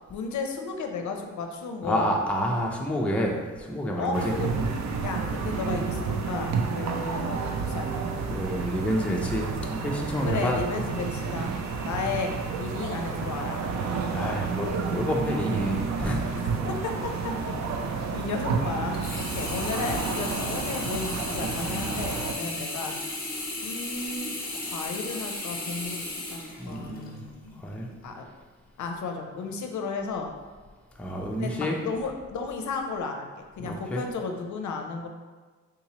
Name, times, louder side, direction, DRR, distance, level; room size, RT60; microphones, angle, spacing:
voice 1, 0.1-2.1 4.0-4.6 5.0-8.1 10.2-11.5 11.8-12.3 12.6-13.6 16.8-17.5 18.1-19.0 19.3-23.0 23.4-26.4 26.7-27.6 28.0-28.3 28.8-30.3 31.4-33.3 33.6-35.1, left 4 dB, 70° left, 4 dB, 0.5 m, -33 dB
voice 2, 1.8-4.3 8.3-10.7 14.1-16.2 26.6-27.2 27.6-27.9 31.0-31.8 33.6-34.0, equal, 5° left, -1 dB, 0.4 m, -29 dB
sound 1, 4.1-22.3, right 5 dB, 60° right, 0.4 m, -30 dB
Sink (filling or washing), 18.9-27.2 27.7-27.8, left 2 dB, 30° left, 0.8 m, -35 dB
3.7 x 2.9 x 2.8 m, 1.4 s
cardioid pair, 105°, 31 cm